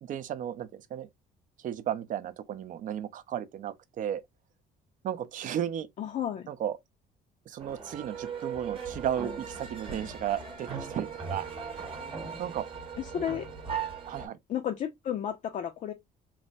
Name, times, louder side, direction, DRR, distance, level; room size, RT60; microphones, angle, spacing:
voice 1, 0.0-1.1 1.6-4.2 5.0-5.9 6.5-6.8 7.5-11.9 12.4-12.7 13.1-13.3 14.1-14.4, right 10 dB, 50° right, 0.4 m, -34 dB
voice 2, 6.0-6.5 13.0-13.5 14.5-15.9, left 9 dB, 45° left, 0.4 m, -32 dB
sound 1, 7.6-14.3, right 6 dB, 30° right, 0.9 m, -38 dB
3.2 x 2.1 x 2.5 m
cardioid pair, 110°, 17 cm